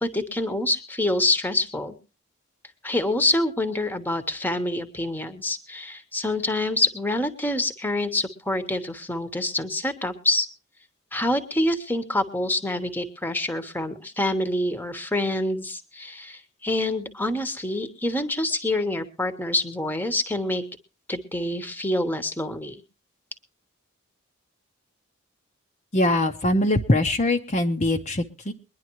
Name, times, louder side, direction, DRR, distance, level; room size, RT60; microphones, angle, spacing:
voice 1, 0.0-1.9 2.8-10.5 11.1-20.6 21.1-22.8, left 1 dB, 10° left, 10 dB, 1.1 m, -26 dB
voice 2, 25.9-28.5, left 1 dB, 35° left, 3 dB, 0.7 m, -22 dB
22.5 x 10.5 x 3.0 m, 0.31 s
head